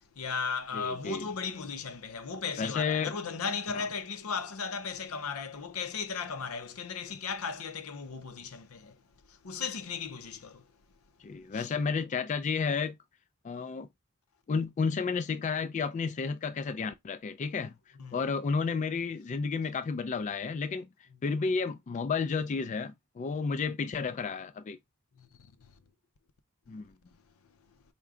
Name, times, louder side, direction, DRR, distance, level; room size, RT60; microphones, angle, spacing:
voice 1, 0.2-9.0 9.3-10.7 11.5-11.7 18.0-18.2 25.2-25.7, left 5 dB, 85° left, 0.6 m, -36 dB
voice 2, 0.7-1.3 2.6-3.1 3.7-3.9 11.2-13.0 13.4-13.9 14.5-17.7 18.1-20.9 21.2-24.8 26.7-26.9, left 5 dB, 35° left, 0.3 m, -31 dB
4.7 x 2.2 x 3.6 m
head